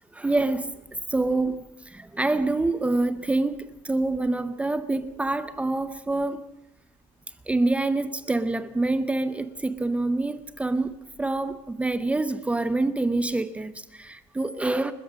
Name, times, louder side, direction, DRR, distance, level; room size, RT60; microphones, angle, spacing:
voice 1, 0.1-6.5 7.5-14.9, right 2 dB, 10° right, 0.7 m, -26 dB
29.5 x 13.5 x 7.4 m
cardioid pair, 175°, 15 cm